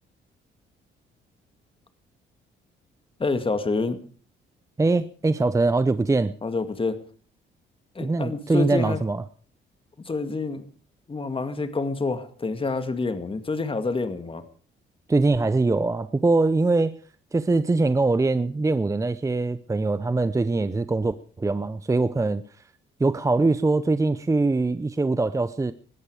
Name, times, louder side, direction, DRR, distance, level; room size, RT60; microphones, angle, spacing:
voice 1, 3.2-4.0 6.4-7.0 8.0-9.0 10.0-10.6 11.1-14.4, left 3 dB, 25° left, 10 dB, 2.1 m, -27 dB
voice 2, 4.8-6.3 8.0-9.2 15.1-16.9 17.3-22.4 23.0-25.7, right 3 dB, 15° right, 14 dB, 0.7 m, -22 dB
20.5 x 14.0 x 4.9 m, 0.42 s
cardioid pair, 90°, 20 cm